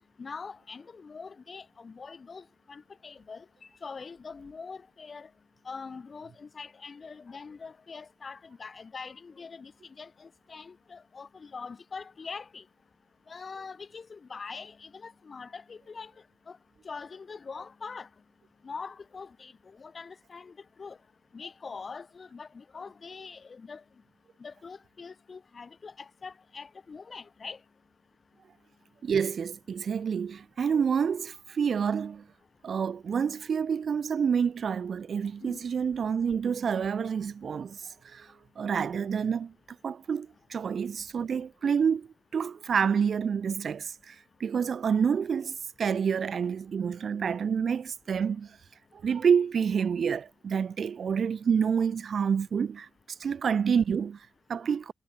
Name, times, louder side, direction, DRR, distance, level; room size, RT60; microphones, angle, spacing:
voice 1, 0.2-3.4 3.8-5.3 5.6-9.7 10.0-12.6 13.3-16.1 16.5-16.6 16.8-18.1 18.6-20.5 20.8-21.0 21.3-23.8 24.4-27.6 35.4-35.6, left 5 dB, 45° left, 7.9 m, -43 dB
voice 2, 29.0-32.3 32.6-39.5 39.8-48.6 48.9-54.9, right 7 dB, 65° right, 1.9 m, -28 dB
cardioid pair, 95°, 0 cm